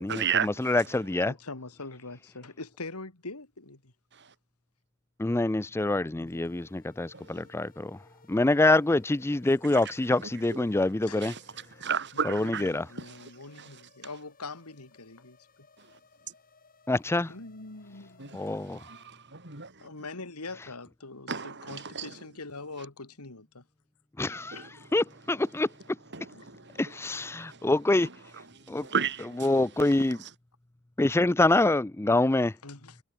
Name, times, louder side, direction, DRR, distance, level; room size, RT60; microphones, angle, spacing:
voice 1, 0.0-1.1 4.1-4.4 7.1-7.5 9.7-14.1 15.8-16.0 16.3-16.4 18.2-20.1 21.3-22.3 22.8-22.9 24.5-27.7 28.0-30.3, right 7 dB, 55° right, 6.2 m, -37 dB
voice 2, 0.7-1.3 5.2-8.0 8.3-11.3 12.3-12.8 16.9-17.3 18.3-18.8 24.2-24.6 24.9-25.7 26.8-28.1 28.7-28.9 29.4-30.2 31.0-32.6, left 2 dB, 10° left, 0.4 m, -25 dB
voice 3, 1.2-3.9 6.1-6.5 11.1-11.2 12.7-15.4 17.3-18.3 19.8-21.3 21.7-23.6 26.3-26.4 32.6-33.0, left 3 dB, 90° left, 2.7 m, -43 dB
sound 1, 6.2-19.1, left 3 dB, 40° left, 7.1 m, -60 dB
head